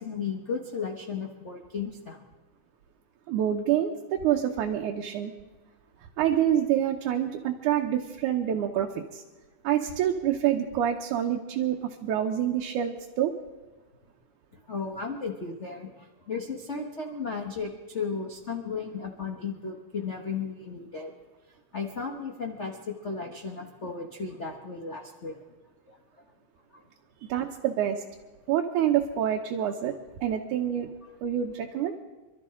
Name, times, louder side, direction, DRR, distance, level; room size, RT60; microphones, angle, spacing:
voice 1, 0.0-2.2 14.5-21.1 21.7-25.4 25.9-26.2 26.7-26.8, left 5 dB, 75° left, 1 dB, 0.6 m, -35 dB
voice 2, 3.3-5.3 6.2-9.2 9.6-13.3 27.2-28.0 28.5-29.9 30.2-30.9 31.2-31.9, right 10 dB, 85° right, 1 dB, 2.4 m, -27 dB
26.5 x 12.5 x 3.7 m, 1.3 s
omnidirectional pair, 3.4 m